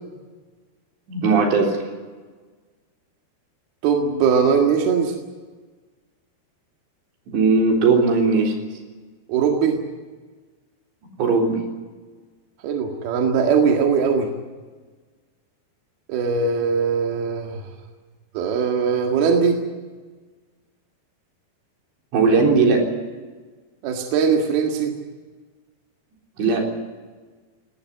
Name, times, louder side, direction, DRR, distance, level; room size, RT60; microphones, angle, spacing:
voice 1, 1.1-1.8 7.3-8.5 11.2-11.6 22.1-22.8 26.4-26.7, right 4 dB, 80° right, 1 dB, 6.1 m, -18 dB
voice 2, 3.8-5.1 9.3-9.8 12.6-14.3 16.1-17.6 18.4-19.6 23.8-24.9, right 6 dB, 65° right, 2 dB, 3.7 m, -20 dB
19.0 x 19.0 x 9.7 m, 1.4 s
omnidirectional pair, 4.9 m